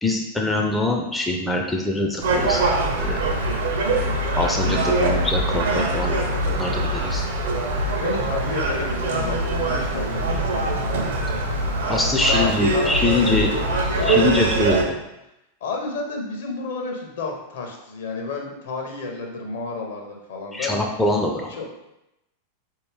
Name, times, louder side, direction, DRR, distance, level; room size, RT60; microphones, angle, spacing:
voice 1, 0.0-2.6 3.0-3.2 4.4-6.2 6.5-7.2 11.9-13.5 14.1-14.8 20.5-21.6, left 2 dB, 5° left, 1 dB, 0.4 m, -23 dB
Gull seagull, 2.2-14.8, right 2 dB, 60° right, 0.6 m, -23 dB
voice 2, 8.0-10.8 12.2-14.9 15.6-20.8 21.5-21.7, left 4 dB, 60° left, 1 dB, 0.8 m, -31 dB
4.2 x 2.7 x 3.3 m, 0.89 s
figure-of-eight pair, 90°, 0 cm